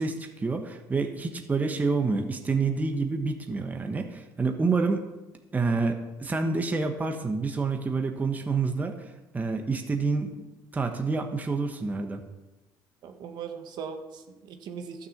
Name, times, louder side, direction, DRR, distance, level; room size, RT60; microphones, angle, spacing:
voice 1, 0.0-5.0 5.5-9.1 9.3-10.5 10.7-12.2, right 4 dB, 20° right, 5 dB, 1.2 m, -28 dB
voice 2, 13.0-15.1, right 6 dB, 65° right, 5 dB, 1.4 m, -39 dB
12.5 x 6.8 x 7.3 m, 1.1 s
cardioid pair, 115°, 8 cm